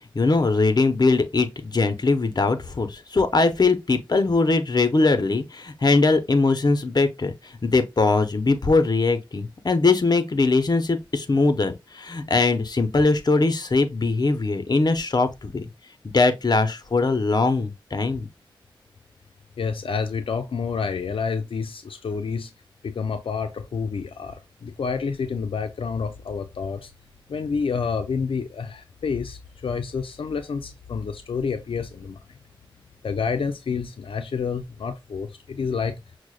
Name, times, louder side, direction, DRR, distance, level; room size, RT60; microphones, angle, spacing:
voice 1, 0.1-7.3 7.6-15.6 16.1-18.3, left 3 dB, 50° left, 0.6 m, -21 dB
voice 2, 19.6-22.5 22.8-26.9 27.3-32.4 33.0-36.0, left 5 dB, 90° left, 0.4 m, -29 dB
6.1 x 2.1 x 2.4 m
wide cardioid pair, 65°, 9 cm